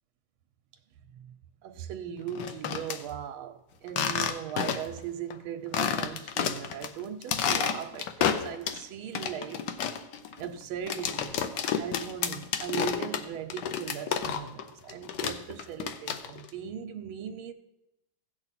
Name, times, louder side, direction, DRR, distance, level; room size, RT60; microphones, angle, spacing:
voice 1, 1.6-9.7 10.4-17.5, right 7 dB, 85° right, 1.4 m, -38 dB
sound 1, 2.3-3.0 3.9-5.0 5.3-5.4 5.7-6.9 7.2-8.8 9.2-14.6 14.9-16.5, left 8 dB, 65° left, 1.2 m, -30 dB
16.0 x 5.8 x 4.1 m
omnidirectional pair, 2.3 m